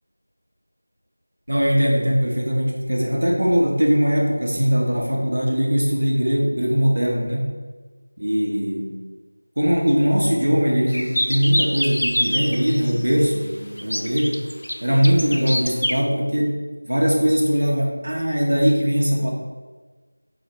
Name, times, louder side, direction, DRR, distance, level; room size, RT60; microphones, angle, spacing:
voice 1, 1.5-7.6 8.2-8.9 9.6-14.4 14.8-16.6 16.8-19.3, equal, 55° right, -1 dB, 1.2 m, -20 dB
sound 1, 10.9-13.0 13.8-16.0, equal, 70° left, 0.5 m, -26 dB
4.7 x 4.5 x 4.8 m, 1.4 s
figure-of-eight pair, 175°, 0 cm